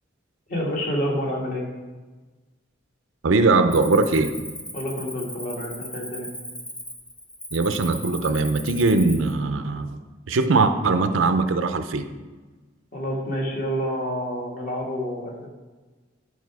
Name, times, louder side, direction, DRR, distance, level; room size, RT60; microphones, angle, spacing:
voice 1, 0.5-1.6 4.7-6.3 12.9-15.5, equal, 45° left, -1 dB, 1.6 m, -28 dB
voice 2, 3.2-4.3 7.5-10.0 10.3-12.1, right 3 dB, 85° right, 9 dB, 0.6 m, -21 dB
Cricket, 3.7-9.3, equal, 5° left, 0.5 m, -37 dB
10.5 x 4.9 x 4.7 m, 1.3 s
head